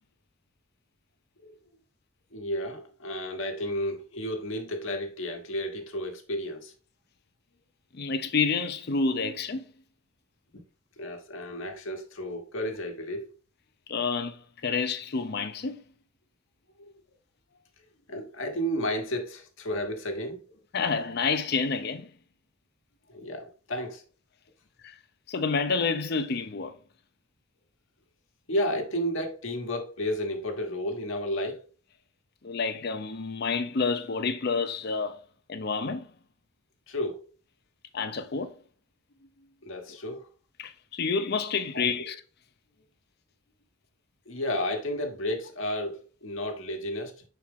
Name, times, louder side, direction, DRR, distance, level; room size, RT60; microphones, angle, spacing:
voice 1, 2.3-6.7 11.0-13.3 16.8-17.0 18.1-20.4 23.1-24.0 28.5-31.6 36.9-37.2 39.6-40.3 41.7-42.1 44.3-47.2, equal, 65° left, 1.3 m, -32 dB
voice 2, 7.9-9.7 13.9-15.8 20.7-22.1 24.8-25.0 25.3-26.7 32.4-35.2 35.5-36.1 37.9-38.5 40.6-42.2, left 4 dB, 50° left, 0.5 m, -29 dB
6.0 x 4.4 x 3.6 m
head